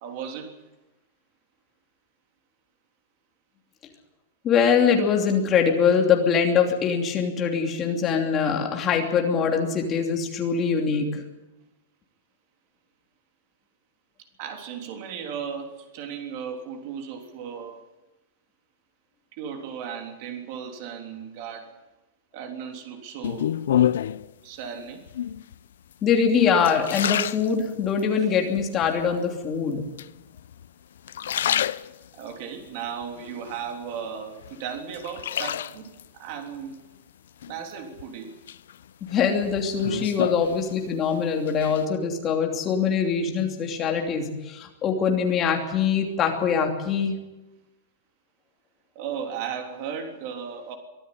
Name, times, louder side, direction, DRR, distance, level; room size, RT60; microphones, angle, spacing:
voice 1, 0.0-0.5 14.4-17.8 19.3-21.7 22.3-23.5 24.4-25.0 32.1-36.8 37.5-38.3 48.9-50.8, right 7 dB, 40° right, 5 dB, 3.4 m, -36 dB
voice 2, 4.4-11.2 26.0-29.8 39.0-47.1, left 6 dB, 20° left, 2 dB, 2.9 m, -23 dB
sound 1, 23.2-24.3 25.1-25.6 26.1-28.1 28.6-29.2 30.0-30.7 31.0-32.3 32.8-34.0 34.4-36.1 37.4-38.0 38.5-41.1 41.3-41.8, left 10 dB, 85° left, 0.7 m, -28 dB
24.0 x 12.5 x 9.9 m, 1.0 s
supercardioid pair, 175°, 0 cm